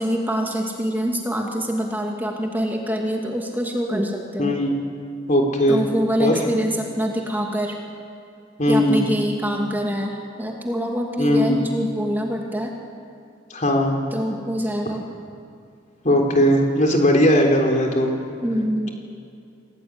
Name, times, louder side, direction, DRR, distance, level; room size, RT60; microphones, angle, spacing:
voice 1, 0.0-4.5 5.7-7.8 8.6-12.7 14.1-15.1 18.4-18.9, equal, 10° right, 0 dB, 2.5 m, -25 dB
voice 2, 4.4-4.7 5.3-5.8 6.2-6.4 8.6-9.2 11.2-11.6 13.5-14.0 16.0-18.1, equal, 40° left, 2 dB, 3.8 m, -18 dB
26.5 x 18.0 x 9.8 m, 2.5 s
head